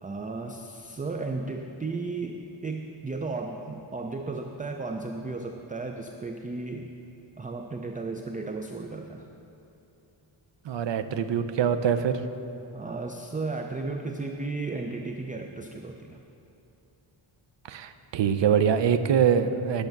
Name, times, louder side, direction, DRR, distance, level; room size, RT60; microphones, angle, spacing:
voice 1, 0.0-6.9 7.4-9.3 12.7-16.2, right 3 dB, 20° right, 4 dB, 0.4 m, -34 dB
voice 2, 10.6-12.2 17.7-19.9, right 7 dB, 60° right, 9 dB, 0.6 m, -24 dB
10.5 x 6.6 x 5.9 m, 2.9 s
wide cardioid pair, 125°, 49 cm